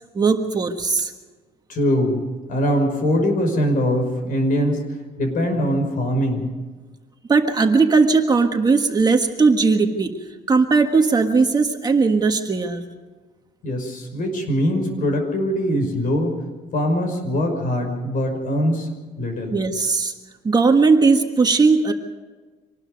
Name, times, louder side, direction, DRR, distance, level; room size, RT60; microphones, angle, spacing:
voice 1, 0.1-1.1 7.3-10.2 10.5-12.8 19.5-20.1 20.4-21.9, right 4 dB, 25° right, 4 dB, 1.5 m, -18 dB
voice 2, 1.7-2.2 2.5-4.8 5.2-6.5 13.6-16.4 16.7-18.9 19.2-19.6, equal, 55° left, 4 dB, 5.6 m, -22 dB
25.5 x 19.5 x 5.3 m, 1.3 s
cardioid pair, 145°, 17 cm